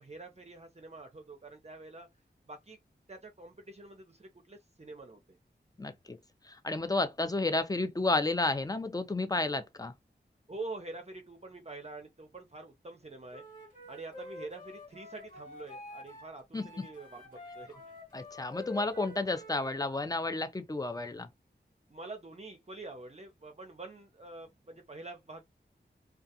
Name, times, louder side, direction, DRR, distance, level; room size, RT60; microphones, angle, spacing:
voice 1, 0.0-2.1 2.5-2.8 3.1-5.4 10.5-13.4 13.9-18.0 21.9-25.4, right 2 dB, 35° right, 0.6 m, -46 dB
voice 2, 5.8-6.2 6.4-9.9 16.5-16.8 18.1-21.3, left 2 dB, 20° left, 0.4 m, -31 dB
Wind instrument woodwind instrument, 13.3-16.3 16.5-19.7, left 1 dB, 45° left, 1.4 m, -48 dB
2.4 x 2.3 x 2.7 m
wide cardioid pair, 55°, 19 cm